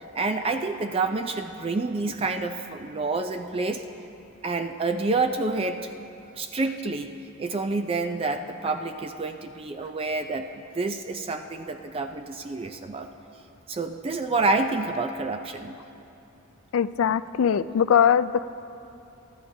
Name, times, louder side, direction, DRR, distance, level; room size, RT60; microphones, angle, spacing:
voice 1, 0.1-3.8 4.4-5.9 6.3-10.5 10.7-13.1 13.7-15.8, right 3 dB, 25° right, 7 dB, 0.4 m, -28 dB
voice 2, 16.7-18.5, left 8 dB, 75° left, 14 dB, 0.3 m, -21 dB
23.5 x 12.5 x 2.7 m, 2.8 s
head